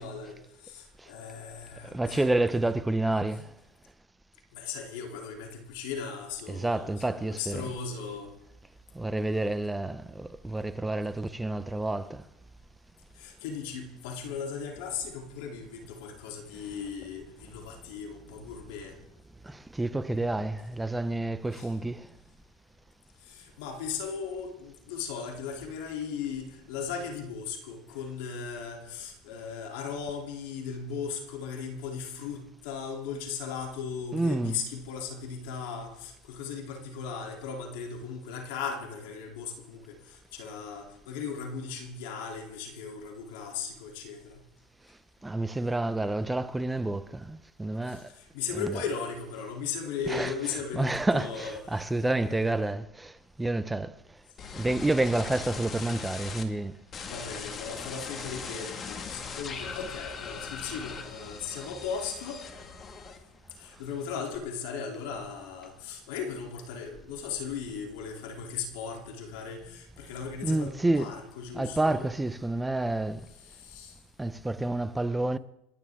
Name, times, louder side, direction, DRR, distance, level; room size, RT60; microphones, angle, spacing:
voice 1, 0.0-2.3 4.5-8.3 13.2-19.0 21.5-21.7 23.2-44.4 47.9-51.9 52.2-52.4 57.1-62.5 63.6-72.1 73.4-73.9, left 6 dB, 75° left, 3.1 m, -37 dB
voice 2, 1.8-3.5 6.5-7.7 8.9-12.2 19.4-22.1 34.1-34.6 45.2-48.1 48.5-48.8 50.1-50.3 50.7-53.9 54.5-56.8 70.4-71.2 71.5-73.3 74.2-75.4, right 2 dB, 10° right, 0.7 m, -29 dB
sound 1, 54.4-56.4 56.9-63.5 63.8-64.4, left 5 dB, 30° left, 1.8 m, -40 dB
28.5 x 11.0 x 3.7 m
supercardioid pair, 120°, 0 cm